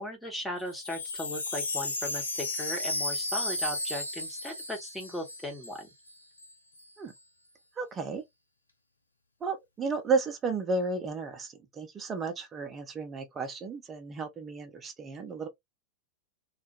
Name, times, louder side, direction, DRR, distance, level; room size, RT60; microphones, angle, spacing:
voice 1, 0.0-5.9, left 1 dB, 5° left, 0.9 m, -37 dB
Wind chime, 0.6-5.8 6.1-6.2 6.4-6.8, left 2 dB, 80° left, 0.5 m, -34 dB
voice 2, 7.8-8.2 9.4-15.5, right 4 dB, 20° right, 0.7 m, -33 dB
2.3 x 2.1 x 2.8 m
figure-of-eight pair, 90°, 0 cm